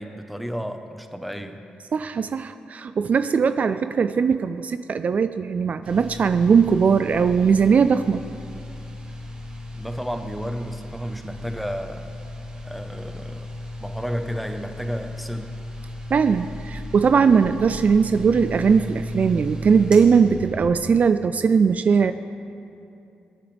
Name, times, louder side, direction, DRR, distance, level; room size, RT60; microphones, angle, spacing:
voice 1, 0.0-1.6 9.7-12.1 12.6-13.5 13.8-15.6, equal, ahead, 6 dB, 1.0 m, -32 dB
voice 2, 1.9-8.2 16.1-22.1, right 6 dB, 55° right, 11 dB, 0.3 m, -19 dB
sound 1, 5.8-20.7, left 1 dB, 35° right, 2.9 m, -36 dB
20.5 x 8.5 x 3.4 m, 2.7 s
cardioid pair, 60°, 3 cm